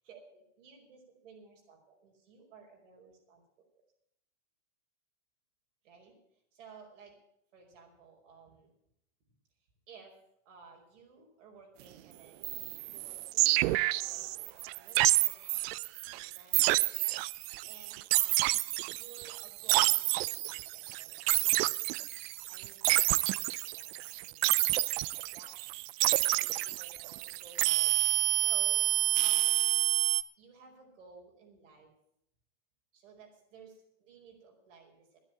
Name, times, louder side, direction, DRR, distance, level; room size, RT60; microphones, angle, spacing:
voice 1, 0.0-3.7 5.8-7.2 7.5-8.7 9.9-10.2 10.5-13.6 13.9-18.5 18.9-21.6 22.5-25.6 26.1-29.9 30.4-31.9 32.9-35.2, right 5 dB, 75° right, 1 dB, 5.2 m, -57 dB
sound 1, 12.4-30.2, right 19 dB, 55° right, 0.5 m, -29 dB
10.5 x 10.5 x 9.2 m, 0.76 s
hypercardioid pair, 115°, 37 cm